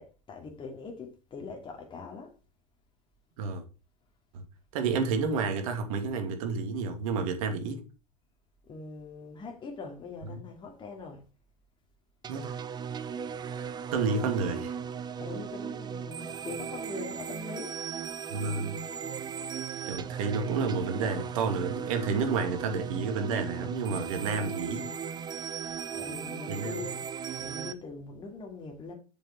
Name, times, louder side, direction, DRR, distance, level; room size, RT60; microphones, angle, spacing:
voice 1, 0.0-2.3 8.7-11.2 15.2-17.7 25.6-27.0 27.4-28.9, left 4 dB, 25° left, 2.5 m, -42 dB
voice 2, 4.7-7.8 10.3-10.4 12.3-12.5 13.6-14.8 18.3-18.8 19.9-24.9 26.5-26.8, right 4 dB, 60° right, 2.6 m, -30 dB
sound 1, 12.2-27.7, right 7 dB, 20° right, 0.8 m, -37 dB
7.6 x 6.6 x 4.4 m
hypercardioid pair, 95°, 20 cm